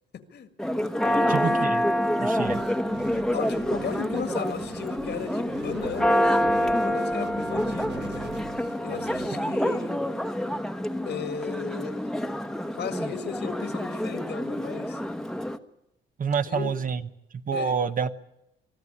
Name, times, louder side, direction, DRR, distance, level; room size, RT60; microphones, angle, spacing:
voice 1, 0.1-0.5 1.0-1.7 3.3-8.3 8.8-10.0 11.1-12.1 12.7-15.0 16.4-16.8 17.5-17.8, left 7 dB, 60° left, 10 dB, 1.9 m, -36 dB
Church bell, 0.6-15.6, equal, ahead, 1.1 m, -27 dB
voice 2, 1.3-1.8 2.2-2.6 16.2-17.0 17.5-18.1, right 6 dB, 45° right, 10 dB, 1.1 m, -27 dB
sound 1, 2.4-9.3, right 7 dB, 60° right, 1.5 m, -43 dB
24.0 x 13.0 x 9.9 m, 0.86 s
cardioid pair, 90°, 20 cm